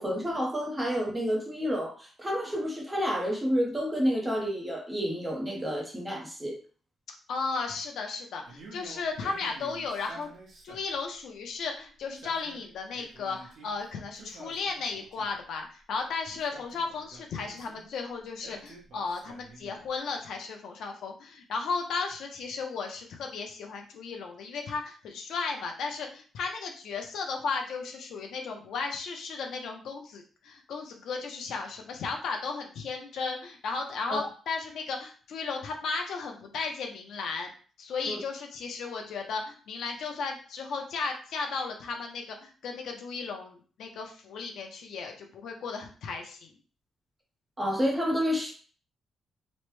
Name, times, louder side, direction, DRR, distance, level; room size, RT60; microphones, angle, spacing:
voice 1, 0.0-6.6 34.1-34.2 38.1-38.2 47.6-48.5, equal, 15° right, -1 dB, 0.7 m, -29 dB
voice 2, 7.3-10.3 10.6-37.5 37.8-46.5, left 4 dB, 75° left, 3 dB, 0.6 m, -35 dB
Male speech man speaking, 8.5-11.0 12.0-13.7 14.1-15.4 16.3-17.8 18.4-19.9, right 3 dB, 60° right, 1.0 m, -50 dB
3.1 x 2.1 x 3.1 m, 0.41 s
cardioid pair, 150°, 0 cm